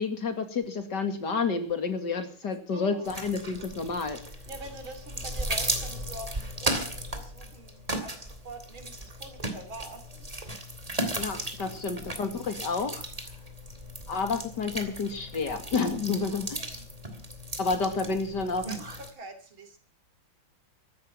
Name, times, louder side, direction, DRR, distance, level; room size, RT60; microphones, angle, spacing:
voice 1, 0.0-4.2 11.1-13.1 14.1-16.8 17.6-18.7, left 4 dB, 55° left, 7 dB, 2.9 m, -30 dB
voice 2, 2.7-3.2 4.5-10.3 16.5-16.9 18.1-19.8, right 2 dB, 75° right, 8 dB, 3.9 m, -45 dB
sound 1, 3.0-19.1, right 1 dB, 20° right, 2.5 m, -36 dB
14.5 x 12.0 x 7.5 m, 0.42 s
omnidirectional pair, 2.2 m